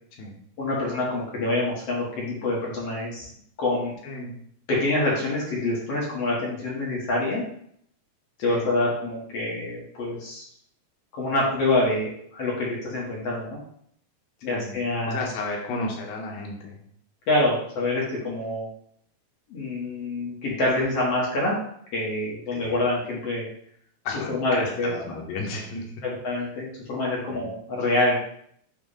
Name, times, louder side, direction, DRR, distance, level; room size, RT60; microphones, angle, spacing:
voice 1, 0.6-3.3 3.6-3.9 4.7-7.4 8.4-10.4 11.1-13.6 14.4-15.2 17.3-18.7 19.5-21.6 21.9-23.5 24.3-24.9 26.0-28.2, left 2 dB, 50° left, -4 dB, 2.2 m, -26 dB
voice 2, 4.0-4.3 8.5-8.7 14.5-16.8 22.5-22.8 24.0-25.9 27.3-27.5, left 3 dB, 80° left, 0 dB, 2.9 m, -33 dB
7.5 x 2.8 x 5.0 m, 0.67 s
omnidirectional pair, 4.3 m